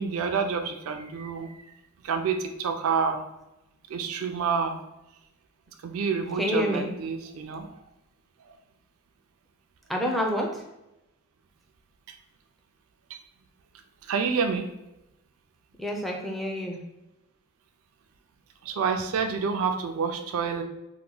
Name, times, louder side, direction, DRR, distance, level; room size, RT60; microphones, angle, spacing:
voice 1, 0.0-1.5 2.0-3.2 3.9-4.8 5.8-7.7 14.1-14.7 18.6-20.6, right 5 dB, 70° right, 5 dB, 0.3 m, -28 dB
voice 2, 6.4-6.9 9.9-10.6 15.8-16.8, equal, ahead, -1 dB, 0.4 m, -28 dB
2.9 x 2.2 x 3.7 m, 0.93 s
head